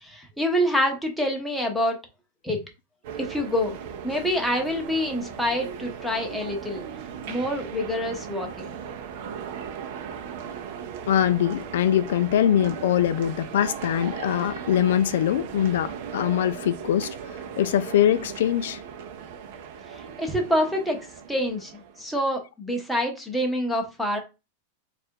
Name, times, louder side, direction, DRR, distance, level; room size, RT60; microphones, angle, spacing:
voice 1, 0.0-2.0 2.4-2.6 3.2-3.8 4.0-6.8 7.3-8.8 20.2-24.2, equal, ahead, 0.8 m, -26 dB
sound 1, 3.0-22.1, right 7 dB, 55° right, 0.6 m, -38 dB
voice 2, 11.1-17.1 17.6-18.8, left 10 dB, 75° left, 0.3 m, -23 dB
3.3 x 2.5 x 4.5 m
supercardioid pair, 160°, 0 cm